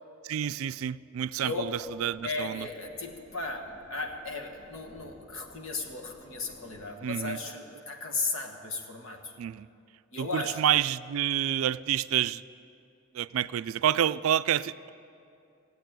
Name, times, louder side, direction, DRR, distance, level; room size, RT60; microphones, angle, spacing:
voice 1, 0.2-2.7 7.0-7.4 9.4-9.7 10.2-12.4 13.1-14.9, right 10 dB, 85° right, 16 dB, 0.3 m, -28 dB
voice 2, 1.4-1.7 2.2-9.3 10.1-10.6, left 3 dB, 75° left, 3 dB, 1.6 m, -36 dB
sound 1, 1.5-6.9, left 1 dB, 20° left, 3.3 m, -56 dB
16.0 x 8.3 x 9.0 m, 2.6 s
head